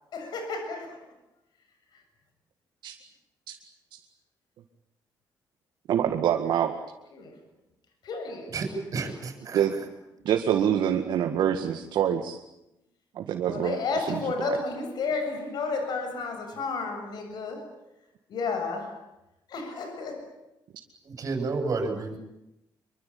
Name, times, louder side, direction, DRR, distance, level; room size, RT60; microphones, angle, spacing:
voice 1, 0.1-1.0 1.9-2.0 7.1-7.4 8.0-8.6 10.2-10.3 13.4-17.8 18.3-19.0 19.5-20.3, left 4 dB, 65° left, 6 dB, 7.3 m, -32 dB
voice 2, 5.9-6.7 9.5-9.7 10.3-12.4 13.2-14.6, right 9 dB, 80° right, 3 dB, 2.1 m, -26 dB
voice 3, 8.5-9.9 21.0-22.2, right 4 dB, 45° right, 5 dB, 7.5 m, -31 dB
25.5 x 24.0 x 8.8 m, 0.89 s
cardioid pair, 130°, 8 cm